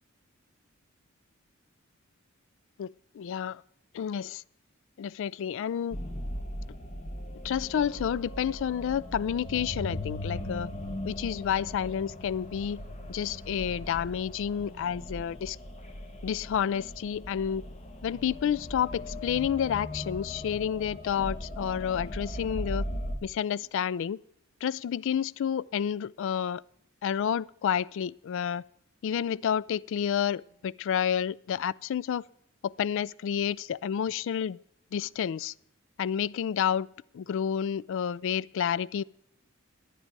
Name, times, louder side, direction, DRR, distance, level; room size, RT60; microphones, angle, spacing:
voice 1, 2.8-3.6 3.9-4.4 5.0-6.0 7.4-10.7 11.1-12.8 13.1-15.6 16.2-17.6 18.0-22.8 23.2-24.2 24.6-26.6 27.0-28.6 29.0-32.2 32.6-34.6 34.9-35.5 36.0-36.9 37.1-39.0, left 8 dB, 65° left, 0.3 m, -30 dB
sound 1, 5.9-23.2, left 1 dB, 35° left, 1.1 m, -38 dB
10.5 x 10.0 x 4.6 m
head